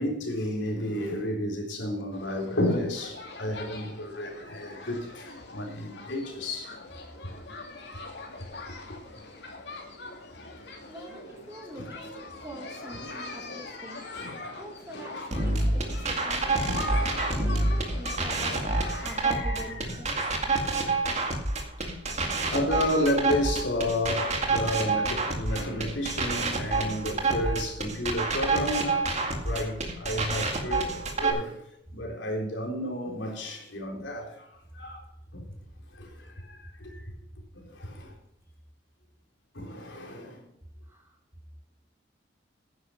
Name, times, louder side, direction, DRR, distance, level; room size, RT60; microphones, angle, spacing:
voice 1, 0.0-6.8 7.9-8.3 8.9-9.0 11.8-11.9 13.0-13.6 14.1-14.4 14.9-15.5 16.7-17.4 18.4-20.0 20.3-21.1 21.8-35.0 35.3-35.5 35.9-37.0 37.5-38.1 39.5-40.5, left 1 dB, 80° left, 3.6 m, -32 dB
sound 1, 2.1-19.0, left 3 dB, 65° left, 2.6 m, -43 dB
voice 2, 10.9-14.1 14.5-18.6 19.0-20.2 40.9-41.2, equal, 15° right, 2.6 m, -45 dB
sound 2, 15.3-31.3, right 3 dB, 40° right, 2.2 m, -28 dB
10.5 x 9.9 x 5.6 m
head